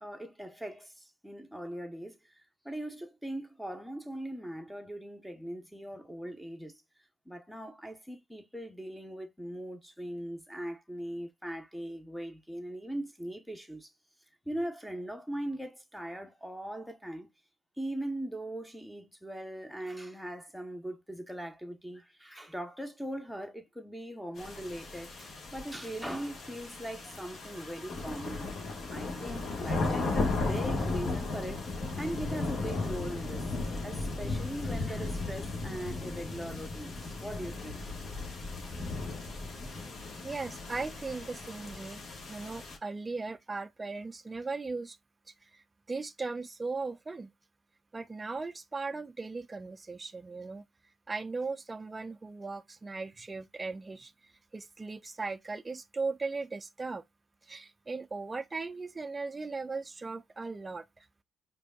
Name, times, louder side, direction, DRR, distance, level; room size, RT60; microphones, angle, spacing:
voice 1, 0.0-2.2 2.6-6.8 7.3-13.9 14.5-17.3 17.8-28.6 28.9-31.7 32.0-33.5 33.8-37.9, right 1 dB, ahead, 0.8 m, -40 dB
sound 1, 24.4-42.8, left 3 dB, 55° left, 1.2 m, -36 dB
voice 2, 40.2-42.0 42.3-45.0 45.9-47.3 47.9-50.6 51.1-54.1 54.5-57.0 57.5-61.0, right 3 dB, 25° right, 0.3 m, -38 dB
5.0 x 2.6 x 2.3 m
hypercardioid pair, 60°, 0 cm